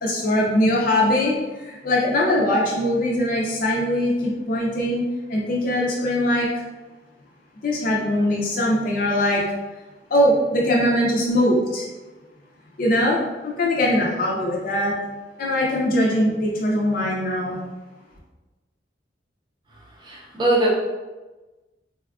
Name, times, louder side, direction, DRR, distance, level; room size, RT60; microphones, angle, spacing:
voice 1, 0.0-5.0 5.3-6.5 7.6-9.4 10.1-11.9 12.8-14.9 15.4-17.6, left 1 dB, 50° left, -4 dB, 0.5 m, -21 dB
voice 2, 20.0-20.7, right 1 dB, 25° right, -5 dB, 0.6 m, -21 dB
3.4 x 2.3 x 2.3 m, 1.2 s
head